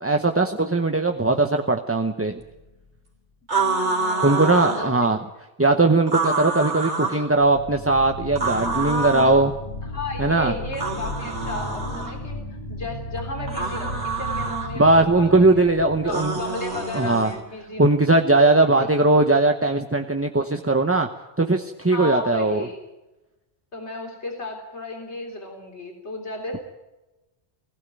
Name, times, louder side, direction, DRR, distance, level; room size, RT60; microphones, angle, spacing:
voice 1, 0.0-2.4 4.2-5.2 5.6-9.5 10.2-10.5 14.8-16.4 16.9-17.3 17.8-21.1 21.4-22.6, right 2 dB, 15° right, 4 dB, 0.8 m, -19 dB
sound 1, 2.4-3.0 7.3-17.5, left 1 dB, 35° left, 2.8 m, -35 dB
voice 2, 3.5-4.9 9.8-15.6 16.0-17.9 18.8-18.9 21.9-22.8 23.7-26.7, left 2 dB, 70° left, 2 dB, 3.8 m, -34 dB
sound 2, 3.5-4.9 6.1-7.2 8.4-9.4 10.7-12.1 13.5-14.7 16.1-17.4, right 3 dB, 70° right, 3.7 m, -27 dB
20.5 x 16.5 x 9.1 m, 1.0 s
omnidirectional pair, 1.2 m